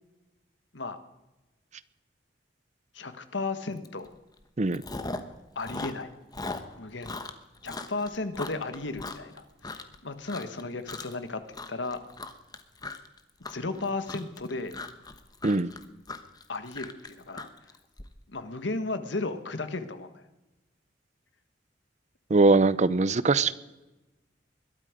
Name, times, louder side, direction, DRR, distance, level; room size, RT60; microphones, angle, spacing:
voice 1, 2.9-4.1 5.5-6.1 6.8-7.2 7.6-12.0 13.5-14.8 16.5-17.5 18.3-20.2, left 3 dB, 85° left, 10 dB, 1.5 m, -34 dB
Chewing mastication, 3.8-4.1 4.4-5.3 5.6-10.0 10.2-10.6 10.9-11.3 11.5-18.0, left 3 dB, 20° left, 1.2 m, -39 dB
voice 2, 22.3-23.5, right 3 dB, 40° right, 17 dB, 0.6 m, -21 dB
21.5 x 13.0 x 5.1 m, 1.0 s
head